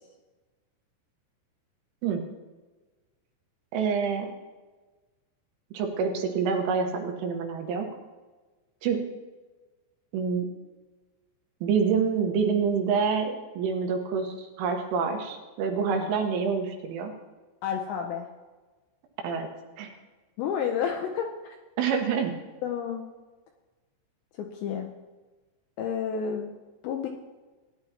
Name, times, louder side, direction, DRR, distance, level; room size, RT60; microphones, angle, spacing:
voice 1, 3.7-4.3 5.7-7.9 8.8-9.0 10.1-10.5 11.6-17.1 19.2-19.5 19.8-19.9 21.8-22.3, right 6 dB, 80° right, 3 dB, 3.7 m, -27 dB
voice 2, 17.6-18.3 20.4-21.3 22.6-23.1 24.4-24.9 25.8-26.5 26.8-27.1, left 7 dB, 80° left, 3 dB, 2.6 m, -30 dB
17.5 x 10.5 x 2.9 m, 1.2 s
omnidirectional pair, 5.9 m